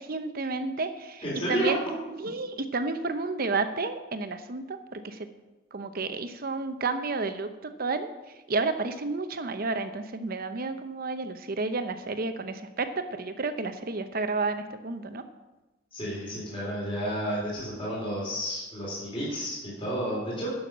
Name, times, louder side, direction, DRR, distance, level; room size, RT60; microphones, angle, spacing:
voice 1, 0.0-1.8 2.2-5.3 5.7-8.1 8.5-15.2, right 3 dB, 50° right, 9 dB, 0.8 m, -31 dB
voice 2, 1.2-1.7 15.9-20.5, equal, 30° left, -6 dB, 3.7 m, -31 dB
11.0 x 6.4 x 6.1 m, 1.1 s
head